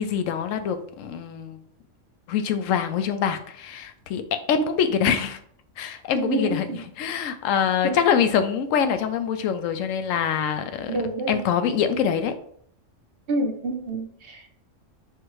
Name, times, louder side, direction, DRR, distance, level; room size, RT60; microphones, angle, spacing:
voice 1, 0.0-1.6 2.3-5.4 5.8-6.7 7.0-10.9 11.3-12.3, left 7 dB, 90° left, 8 dB, 1.0 m, -24 dB
voice 2, 6.1-6.8 7.8-8.0 10.9-11.4 13.3-14.5, right 2 dB, 55° right, 4 dB, 0.8 m, -28 dB
4.6 x 2.5 x 4.6 m, 0.63 s
omnidirectional pair, 1.3 m